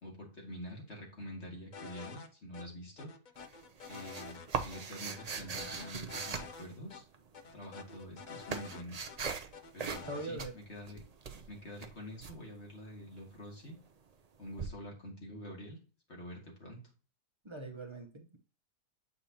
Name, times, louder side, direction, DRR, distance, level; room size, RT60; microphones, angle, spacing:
voice 1, 0.0-3.1 3.9-7.0 7.5-9.0 9.7-11.0 11.5-13.8 14.4-15.8 16.1-16.8, equal, 40° left, -1 dB, 2.4 m, -47 dB
sound 1, 1.7-2.3 2.5-2.6 3.0-4.5 4.7-4.8 5.2-6.6 6.9-7.0 7.3-9.2 9.5-10.3, left 5 dB, 70° left, 0.4 m, -48 dB
sound 2, 3.4-7.2 7.9-9.5 9.8-10.1 10.4-12.3 14.6-14.7, right 5 dB, 85° right, 0.3 m, -40 dB
voice 2, 10.1-10.5 17.4-18.4, right 2 dB, 20° right, 3 dB, 0.9 m, -42 dB
8.5 x 5.2 x 2.9 m, 0.36 s
omnidirectional pair, 1.7 m